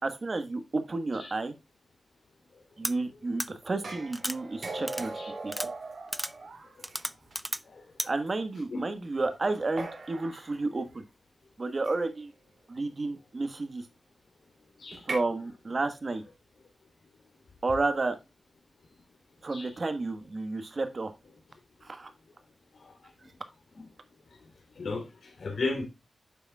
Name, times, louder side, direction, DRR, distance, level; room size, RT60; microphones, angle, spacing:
voice 1, 0.0-1.6 2.8-5.1 5.4-5.5 8.0-11.0 11.6-12.3 12.7-13.9 15.0-16.2 17.6-18.1 19.4-21.1 21.8-22.1, right 3 dB, 40° right, 1.4 m, -31 dB
sound 1, 2.8-2.9 3.4-3.5 4.1-4.4 4.9-5.0 5.5-5.7 6.1-6.3 6.8-7.6 8.0-8.1, equal, 5° right, 0.4 m, -33 dB
sound 2, 3.8-7.3 8.3-8.4 9.8-10.6 11.8-12.2 14.9-15.2, right 3 dB, 60° right, 2.6 m, -39 dB
voice 2, 24.8-25.9, left 3 dB, 75° left, 3.1 m, -35 dB
9.6 x 7.0 x 2.3 m
wide cardioid pair, 100°, 0 cm